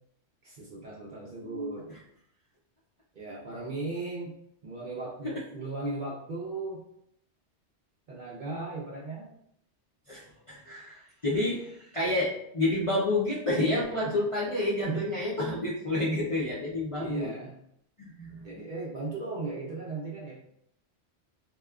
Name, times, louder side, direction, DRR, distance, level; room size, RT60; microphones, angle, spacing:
voice 1, 0.4-1.9 3.1-4.3 4.6-6.8 8.1-9.4 12.0-12.2 14.2-14.3 14.8-15.1 17.0-17.6 18.4-20.4, right 3 dB, 55° right, -4 dB, 0.6 m, -37 dB
voice 2, 10.1-17.3 18.0-18.6, left 1 dB, 45° left, -8 dB, 0.4 m, -29 dB
2.9 x 2.1 x 2.3 m, 0.71 s
omnidirectional pair, 1.2 m